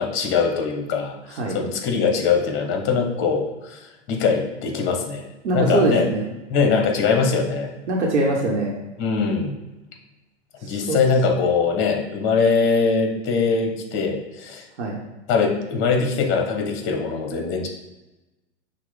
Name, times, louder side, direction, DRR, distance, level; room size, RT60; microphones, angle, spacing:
voice 1, 0.0-5.3 5.5-6.0 6.5-7.7 9.0-9.5 10.6-14.7 15.3-17.7, left 5 dB, 35° left, 3 dB, 1.0 m, -22 dB
voice 2, 5.4-6.2 7.9-8.7 10.6-11.0 14.8-15.0, right 2 dB, 75° right, -1 dB, 1.0 m, -22 dB
6.0 x 2.2 x 3.7 m, 1.0 s
hypercardioid pair, 100°, 35 cm